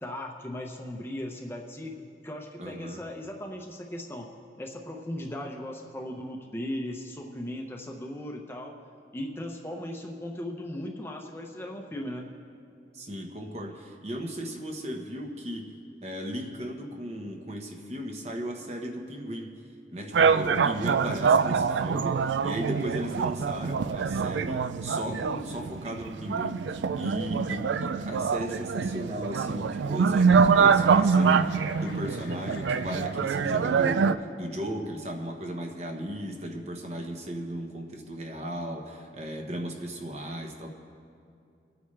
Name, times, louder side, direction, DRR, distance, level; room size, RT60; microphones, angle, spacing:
voice 1, 0.0-2.0 2.2-4.3 4.6-8.8 9.1-12.3, left 1 dB, 15° left, 1 dB, 0.8 m, -37 dB
voice 2, 2.6-3.0 12.9-15.7 16.0-19.6 19.9-26.7 27.0-40.7, equal, 35° right, 2 dB, 1.2 m, -36 dB
sound 1, 20.1-34.2, right 5 dB, 85° right, 0.4 m, -25 dB
Chuckle chortle, 30.4-34.5, left 2 dB, 85° left, 1.4 m, -46 dB
23.5 x 9.2 x 3.3 m, 2.5 s
head